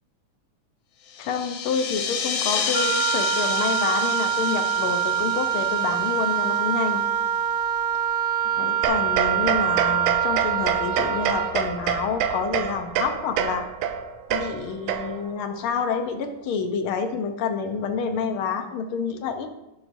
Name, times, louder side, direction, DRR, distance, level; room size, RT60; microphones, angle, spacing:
sound 1, 1.1-7.2, left 6 dB, 65° left, 1.7 m, -31 dB
voice 1, 1.2-7.0 8.6-13.7 14.3-19.5, left 6 dB, 85° left, 6 dB, 1.2 m, -28 dB
Wind instrument woodwind instrument, 2.7-11.6, right 9 dB, 70° right, 2.1 m, -24 dB
sound 2, 8.8-15.4, right 8 dB, 85° right, 2.2 m, -27 dB
12.5 x 11.5 x 2.7 m, 0.92 s
omnidirectional pair, 3.5 m